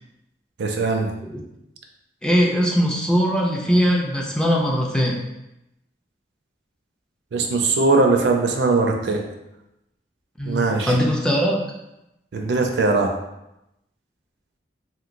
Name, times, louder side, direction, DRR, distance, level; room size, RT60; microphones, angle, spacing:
voice 1, 0.6-1.1 7.3-9.3 10.5-10.9 12.3-13.2, right 3 dB, 70° right, 3 dB, 0.4 m, -20 dB
voice 2, 2.2-5.2 10.4-11.6, equal, 5° left, -2 dB, 0.3 m, -20 dB
2.9 x 2.8 x 2.5 m, 0.89 s
head